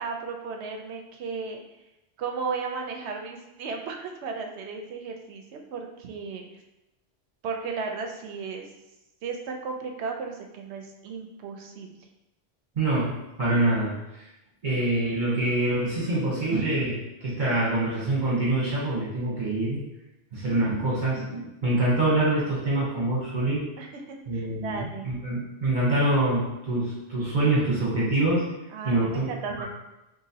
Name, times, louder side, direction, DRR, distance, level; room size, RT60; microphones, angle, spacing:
voice 1, 0.0-1.6 2.2-6.4 7.4-8.7 9.2-11.9 23.8-25.1 28.7-29.7, right 5 dB, 80° right, 3 dB, 0.8 m, -35 dB
voice 2, 12.8-13.9 14.6-19.8 20.3-23.6 24.3-28.5 28.8-29.3, right 2 dB, 50° right, -8 dB, 1.1 m, -25 dB
3.9 x 2.7 x 2.7 m, 0.94 s
omnidirectional pair, 1.1 m